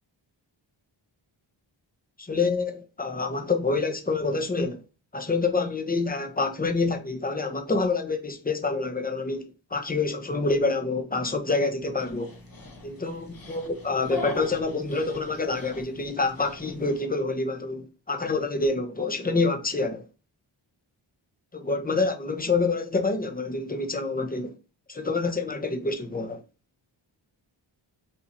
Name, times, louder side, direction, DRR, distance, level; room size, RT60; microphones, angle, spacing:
voice 1, 2.2-4.8 5.1-12.4 12.8-20.1 21.5-24.6 24.9-26.4, left 3 dB, 20° left, 0.8 m, -27 dB
Dog, 12.0-17.0, left 2 dB, 45° left, 1.2 m, -40 dB
5.5 x 3.0 x 2.7 m
cardioid pair, 50°, 49 cm